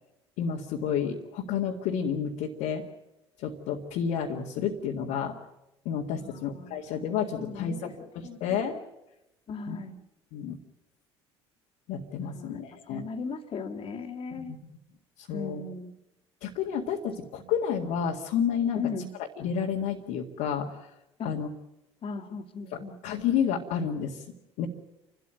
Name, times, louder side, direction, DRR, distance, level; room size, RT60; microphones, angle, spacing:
voice 1, 0.4-2.8 3.4-5.3 5.9-8.8 9.7-9.8 10.3-10.6 11.9-13.0 14.3-14.6 15.2-15.6 16.4-18.8 19.4-20.9 21.2-21.5 22.7-24.2 24.6-24.7, left 7 dB, 60° left, -1 dB, 2.1 m, -30 dB
voice 2, 6.2-6.8 7.4-7.9 8.2-8.4 9.5-10.0 12.3-14.5 15.3-16.0 17.4-17.5 18.7-19.1 21.2-21.3 22.0-23.0, left 4 dB, 40° left, 3 dB, 2.4 m, -37 dB
30.0 x 13.0 x 9.1 m, 0.92 s
figure-of-eight pair, 60°, 14 cm